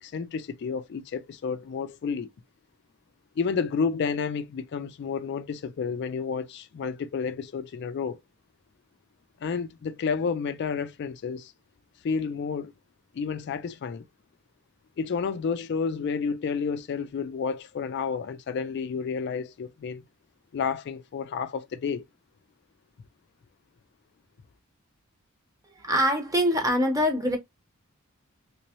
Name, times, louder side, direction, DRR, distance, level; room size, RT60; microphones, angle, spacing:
voice 1, 0.0-2.3 3.4-8.2 9.4-11.5 12.0-12.7 13.1-14.0 15.0-20.0 20.5-22.0, left 5 dB, 55° left, 0.3 m, -30 dB
voice 2, 25.8-27.4, equal, 15° right, 0.9 m, -24 dB
3.3 x 3.0 x 2.9 m
head